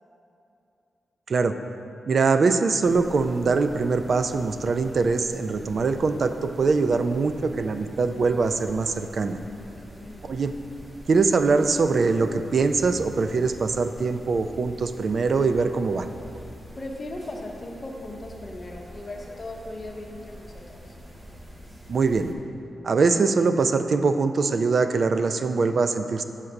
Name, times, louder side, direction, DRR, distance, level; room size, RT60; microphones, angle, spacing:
voice 1, 2.1-9.4 10.2-10.5 11.1-16.1 21.9-22.3 22.8-26.2, right 4 dB, 45° right, 8 dB, 0.3 m, -23 dB
sound 1, 2.8-22.4, equal, 20° right, 0.7 m, -45 dB
voice 2, 6.6-7.1 9.5-10.3 16.8-20.9, left 1 dB, 25° left, -1 dB, 0.8 m, -38 dB
5.7 x 4.8 x 6.5 m, 2.8 s
wide cardioid pair, 160°, 0 cm